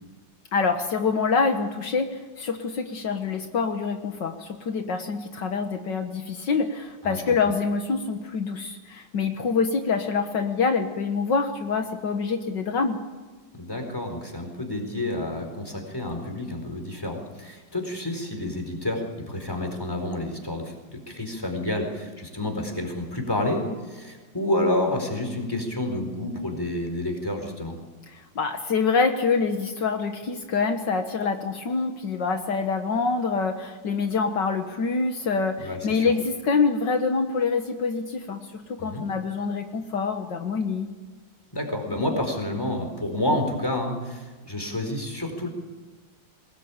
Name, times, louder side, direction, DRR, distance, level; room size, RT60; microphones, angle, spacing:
voice 1, 0.5-13.0 28.1-40.9, left 4 dB, 70° left, 5 dB, 2.1 m, -26 dB
voice 2, 7.0-7.4 13.5-27.7 35.6-36.1 38.8-39.1 41.5-45.5, left 1 dB, 10° left, 3 dB, 4.5 m, -29 dB
22.5 x 20.0 x 8.5 m, 1.3 s
omnidirectional pair, 2.0 m